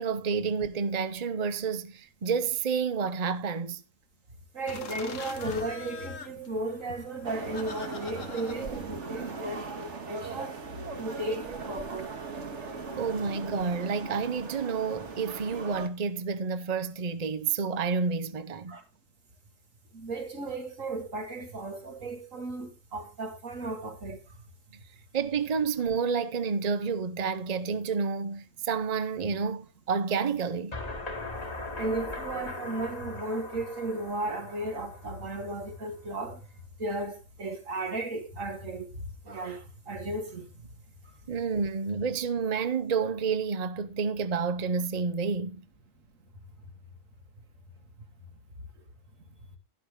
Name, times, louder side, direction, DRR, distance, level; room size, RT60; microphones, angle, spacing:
voice 1, 0.0-3.8 13.0-18.8 25.1-30.7 41.3-45.6, right 5 dB, 35° right, 0.9 m, -29 dB
voice 2, 4.5-10.6 11.0-12.1 18.7-18.8 19.9-24.2 31.8-36.4 36.8-40.5, right 2 dB, 90° right, 2.6 m, -35 dB
sound 1, 4.7-9.8, left 6 dB, 75° left, 1.6 m, -44 dB
sound 2, 7.2-15.9, right 4 dB, 65° right, 2.0 m, -39 dB
sound 3, 30.7-35.6, left 2 dB, 30° left, 2.0 m, -39 dB
11.5 x 11.5 x 3.7 m
omnidirectional pair, 1.3 m